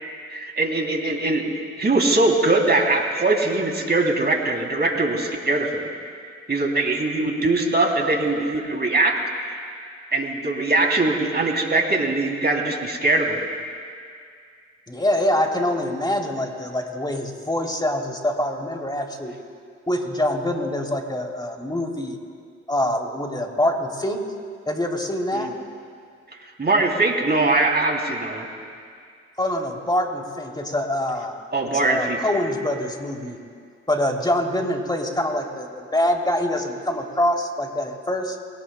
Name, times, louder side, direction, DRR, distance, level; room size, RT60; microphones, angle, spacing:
voice 1, 0.3-5.8 6.5-9.2 9.5-9.6 10.1-13.4 25.3-25.5 26.4-28.5 31.5-32.2, right 2 dB, 35° right, 1 dB, 2.9 m, -21 dB
voice 2, 14.9-19.3 19.9-22.2 22.7-24.2 24.7-25.5 29.4-33.4 33.9-38.4, left 1 dB, 15° left, 2 dB, 2.9 m, -25 dB
23.0 x 18.0 x 2.2 m, 2.2 s
hypercardioid pair, 50°, 30 cm